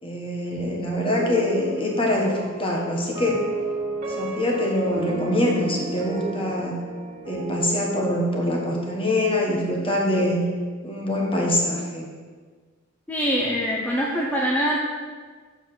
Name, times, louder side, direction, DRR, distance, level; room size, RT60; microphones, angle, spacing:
voice 1, 0.0-3.4 4.2-6.7 7.3-10.4 10.8-12.1, left 1 dB, 30° left, -1 dB, 1.4 m, -24 dB
sound 1, 1.1-10.3, right 2 dB, 45° right, 1.9 m, -33 dB
voice 2, 13.1-14.8, equal, 10° left, -4 dB, 0.7 m, -23 dB
7.2 x 5.4 x 6.1 m, 1.5 s
head